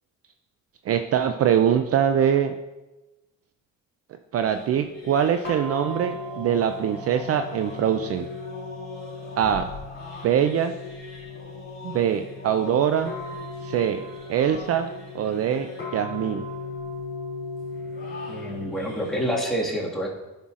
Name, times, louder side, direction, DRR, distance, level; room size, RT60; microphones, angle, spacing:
voice 1, 0.9-2.6 4.3-8.3 9.4-9.7 10.2-10.7 11.8-13.1 13.6-14.0 14.3-14.9 15.1-16.4, right 9 dB, 50° right, 8 dB, 0.4 m, -23 dB
sound 1, 4.5-19.4, left 3 dB, 45° left, 2.5 m, -37 dB
voice 2, 18.3-20.1, equal, ahead, -4 dB, 1.8 m, -28 dB
11.0 x 5.5 x 2.5 m, 1.1 s
cardioid pair, 90°, 30 cm